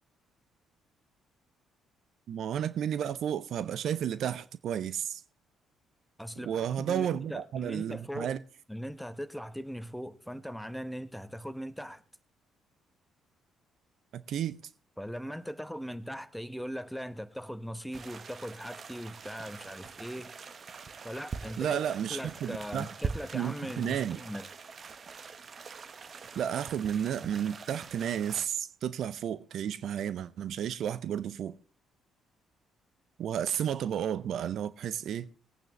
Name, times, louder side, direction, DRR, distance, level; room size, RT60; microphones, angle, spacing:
voice 1, 2.3-5.2 6.4-8.4 14.1-14.6 21.6-22.9 23.3-24.2 26.4-31.5 33.2-35.3, right 9 dB, 60° right, 0.5 m, -32 dB
voice 2, 6.2-8.4 8.7-12.0 15.0-20.3 21.0-21.8 22.1-24.5, equal, ahead, 1.1 m, -40 dB
sound 1, 17.9-28.5, right 5 dB, 45° right, 1.0 m, -43 dB
20.0 x 8.9 x 3.2 m
hypercardioid pair, 45°, 0 cm